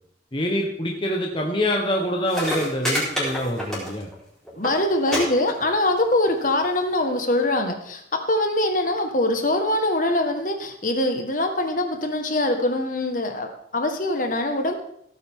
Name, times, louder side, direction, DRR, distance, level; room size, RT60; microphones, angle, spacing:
voice 1, 0.3-4.1, equal, 25° left, 0 dB, 1.2 m, -25 dB
sound 1, 2.0-2.1 2.3-4.2 4.5-4.7 5.1-5.2 5.5-6.0 6.8-6.9, equal, 5° left, 4.3 m, -27 dB
voice 2, 4.6-8.0 8.3-14.8, left 1 dB, 45° left, 5 dB, 1.5 m, -23 dB
16.5 x 9.2 x 3.7 m, 0.71 s
head